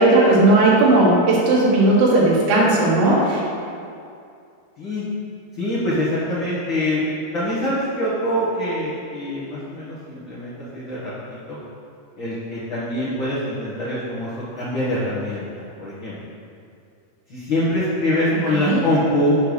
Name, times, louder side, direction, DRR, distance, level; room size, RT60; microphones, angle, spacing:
voice 1, 0.0-3.4 18.5-18.8, right 2 dB, 60° right, -5 dB, 2.6 m, -16 dB
voice 2, 5.6-7.0 7.3-11.6 12.2-14.3 14.5-16.1 17.3-19.3, left 1 dB, 75° left, -9 dB, 1.1 m, -24 dB
6.7 x 5.3 x 6.4 m, 2.4 s
omnidirectional pair, 4.5 m